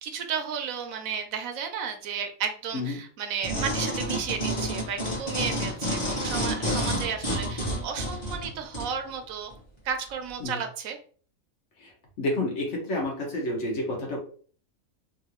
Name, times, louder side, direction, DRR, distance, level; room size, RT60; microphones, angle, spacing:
voice 1, 0.0-9.5 9.8-11.0, right 7 dB, 75° right, 6 dB, 1.0 m, -33 dB
sound 1, 3.4-8.9 9.5-9.6, equal, 20° left, 1.0 m, -29 dB
voice 2, 12.2-14.2, left 1 dB, 60° left, -1 dB, 1.2 m, -29 dB
3.1 x 2.6 x 2.9 m, 0.44 s
omnidirectional pair, 1.5 m